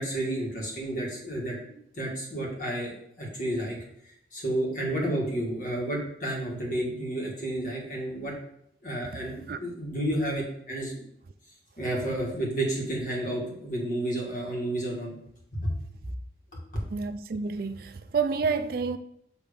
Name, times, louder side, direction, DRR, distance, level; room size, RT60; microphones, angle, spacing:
voice 1, 0.0-1.6 1.9-3.8 4.0-8.3 8.8-11.0 11.8-15.1 15.5-15.7, right 1 dB, 45° left, 1.9 m, -31 dB
voice 2, 16.9-19.0, right 5 dB, 55° right, 0.4 m, -29 dB
7.2 x 3.2 x 5.2 m
head